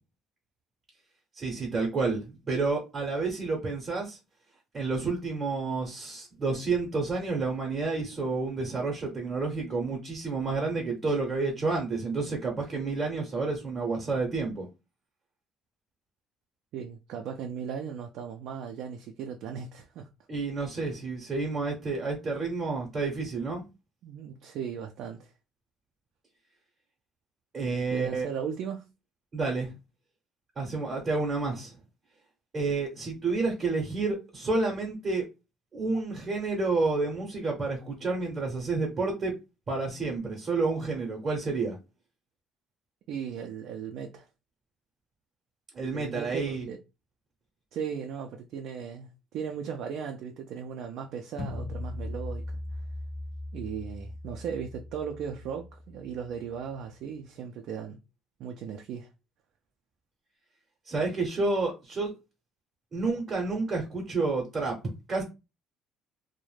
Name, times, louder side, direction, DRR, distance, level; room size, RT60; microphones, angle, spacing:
voice 1, 1.4-4.2 4.7-14.7 20.3-23.6 27.5-28.3 29.3-29.7 30.6-31.8 32.5-35.3 35.7-39.4 39.7-41.8 45.7-46.7 60.9-62.1 62.9-64.8 65.1-65.2, right 3 dB, 30° right, 0.7 m, -30 dB
voice 2, 16.7-20.1 24.0-25.3 27.9-28.8 43.1-44.3 45.9-46.8 47.7-52.4 53.5-58.0 58.4-59.1, right 7 dB, 65° right, 0.3 m, -37 dB
sound 1, 51.4-56.4, left 1 dB, 30° left, 0.4 m, -39 dB
2.3 x 2.0 x 3.1 m
cardioid pair, 135°, 0 cm